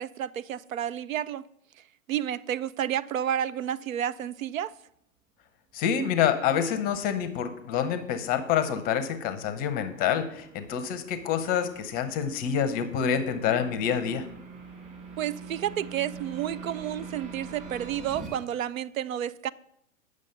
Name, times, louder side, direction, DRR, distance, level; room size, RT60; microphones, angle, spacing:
voice 1, 0.0-1.4 2.1-4.7 15.2-19.5, right 10 dB, 75° right, 0.5 m, -31 dB
voice 2, 5.7-14.3, left 8 dB, 20° left, 0.6 m, -27 dB
sound 1, 7.3-18.3, right 4 dB, 20° right, 2.2 m, -45 dB
8.8 x 6.2 x 5.6 m
hypercardioid pair, 120°, 41 cm